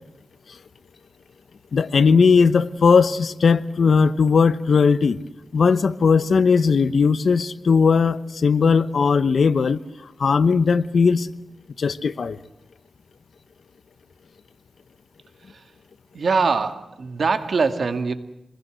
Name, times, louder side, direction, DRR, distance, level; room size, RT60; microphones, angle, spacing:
voice 1, 1.7-5.2 5.5-9.8 10.2-11.3 11.8-12.4, left 5 dB, 75° left, 14 dB, 1.0 m, -18 dB
voice 2, 16.1-18.1, right 4 dB, 70° right, 8 dB, 2.0 m, -23 dB
26.5 x 21.0 x 7.9 m, 0.86 s
wide cardioid pair, 80°, 0 cm